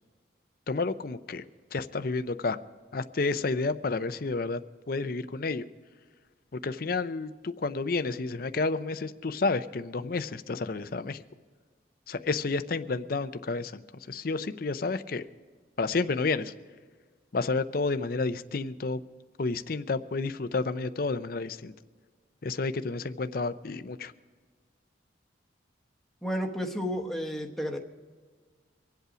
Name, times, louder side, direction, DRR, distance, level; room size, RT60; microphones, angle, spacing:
voice 1, 0.7-1.4 1.7-2.6 2.9-4.6 4.9-5.6 6.5-11.2 12.1-13.8 14.1-15.2 15.8-16.5 17.3-19.0 19.4-21.7 22.4-24.1, left 3 dB, 50° left, 11 dB, 0.5 m, -30 dB
voice 2, 26.2-27.8, equal, ahead, 2 dB, 1.1 m, -32 dB
24.0 x 8.2 x 5.0 m, 1.5 s
head